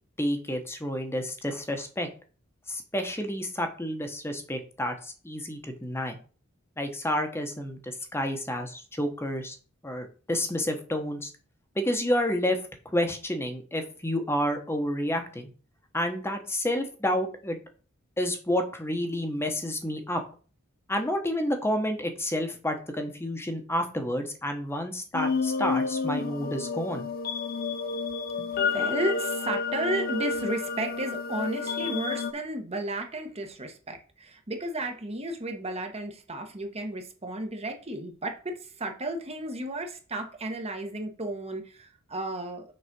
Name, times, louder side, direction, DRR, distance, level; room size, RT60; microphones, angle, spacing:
voice 1, 0.2-2.1 2.7-6.2 6.8-9.6 9.8-11.3 11.7-12.6 12.8-15.5 15.9-17.6 18.2-20.2 20.9-27.1 28.4-28.5, equal, 10° left, 1.1 m, -30 dB
sound 1, 25.1-32.3, left 5 dB, 45° left, 0.7 m, -30 dB
voice 2, 28.6-42.6, right 1 dB, 30° right, 1.2 m, -33 dB
6.5 x 4.1 x 6.0 m
head